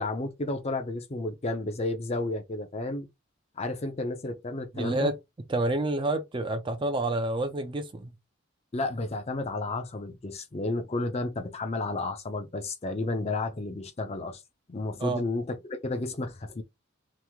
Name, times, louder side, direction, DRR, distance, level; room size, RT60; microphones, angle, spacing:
voice 1, 0.0-3.1 3.6-5.1 8.7-14.4 14.7-16.6, left 2 dB, 30° left, 0.5 m, -32 dB
voice 2, 4.7-5.1 5.5-8.1 15.0-15.3, right 2 dB, 25° right, 0.4 m, -28 dB
3.0 x 2.0 x 3.5 m
head